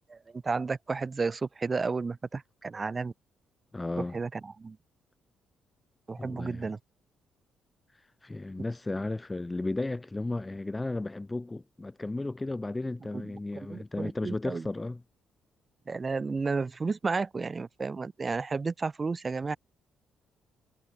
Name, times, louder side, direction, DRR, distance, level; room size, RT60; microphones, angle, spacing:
voice 1, 0.4-3.1 4.1-4.8 6.1-6.8 13.2-13.3 13.7-14.7 15.9-19.6, right 4 dB, 30° right, 1.3 m, -32 dB
voice 2, 3.7-4.2 6.2-6.7 8.2-15.0, left 2 dB, 15° left, 0.5 m, -34 dB
cardioid pair, 90°, 0 cm